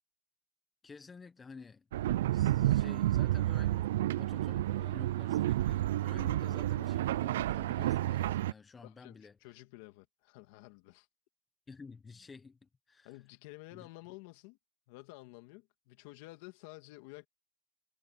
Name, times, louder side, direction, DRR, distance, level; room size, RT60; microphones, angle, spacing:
voice 1, 0.8-1.9 2.3-9.6 11.7-13.2 13.7-13.9, left 4 dB, 10° left, 1.2 m, -52 dB
sound 1, 1.9-8.5, right 14 dB, 80° right, 0.4 m, -30 dB
voice 2, 8.8-11.1 13.0-14.6 14.9-17.3, left 21 dB, 55° left, 2.2 m, -51 dB
supercardioid pair, 160°, 0 cm